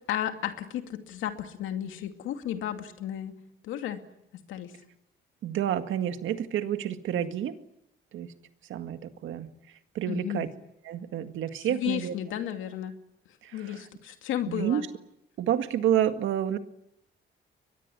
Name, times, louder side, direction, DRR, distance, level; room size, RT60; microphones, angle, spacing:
voice 1, 0.1-3.3 3.6-4.0 4.5-4.7 10.1-10.4 11.7-12.9 13.5-14.8, left 11 dB, 90° left, 6 dB, 2.5 m, -33 dB
voice 2, 5.4-7.6 8.1-8.3 8.7-9.5 9.9-10.5 10.8-12.1 13.4-13.9 14.5-14.8 15.4-16.6, right 10 dB, 80° right, 8 dB, 1.9 m, -29 dB
23.0 x 20.0 x 9.8 m, 0.81 s
cardioid pair, 90°, 20 cm